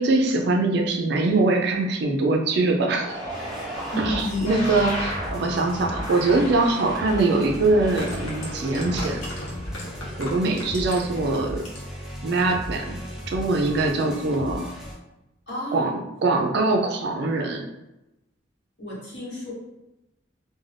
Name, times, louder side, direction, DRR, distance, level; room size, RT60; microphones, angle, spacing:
voice 1, 0.0-3.2 4.0-9.3 10.2-11.6 12.2-13.0 13.3-14.7 15.7-17.7, right 2 dB, 60° right, 2 dB, 0.4 m, -23 dB
sound 1, 3.0-10.9, equal, 35° left, 1.1 m, -36 dB
sound 2, 3.3-14.9, equal, 5° right, 0.5 m, -37 dB
voice 2, 3.9-4.4 10.4-10.6 15.5-16.1 18.8-19.5, left 1 dB, 60° left, -6 dB, 1.1 m, -31 dB
sound 3, 6.8-6.9 7.8-11.2 11.5-12.0 12.4-12.5, left 1 dB, 85° left, 0.8 m, -36 dB
2.5 x 2.2 x 3.2 m, 0.94 s
head